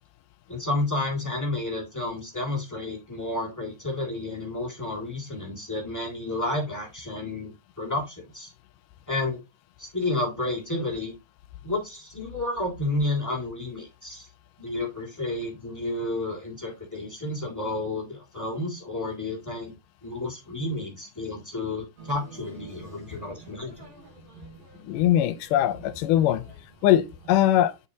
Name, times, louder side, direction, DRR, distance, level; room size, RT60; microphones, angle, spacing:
voice 1, 0.5-8.5 9.1-9.4 9.8-11.2 11.6-14.3 14.6-19.7 20.0-23.9, left 2 dB, 10° left, 1.1 m, -31 dB
sound 1, 22.0-27.3, right 3 dB, 90° right, 4.5 m, -49 dB
voice 2, 24.8-26.4 26.8-27.7, left 12 dB, 85° left, 2.2 m, -21 dB
8.5 x 4.5 x 2.8 m
omnidirectional pair, 3.8 m